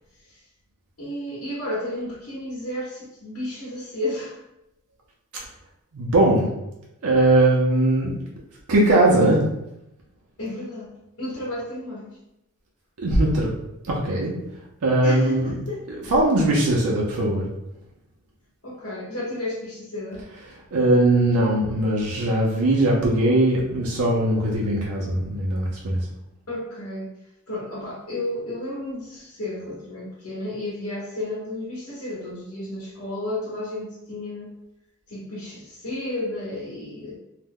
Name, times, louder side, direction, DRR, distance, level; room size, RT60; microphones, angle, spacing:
voice 1, 1.0-4.4 10.4-10.9 11.2-12.2 15.0-15.9 18.6-20.3 26.5-27.1 27.5-34.5 35.1-37.2, left 1 dB, 70° left, -7 dB, 1.1 m, -32 dB
voice 2, 5.9-6.5 7.0-8.1 8.7-9.4 13.0-13.5 13.9-14.3 14.8-15.5 16.1-17.4 20.7-26.0, right 1 dB, 90° right, -4 dB, 0.6 m, -20 dB
2.8 x 2.1 x 3.5 m, 0.89 s
head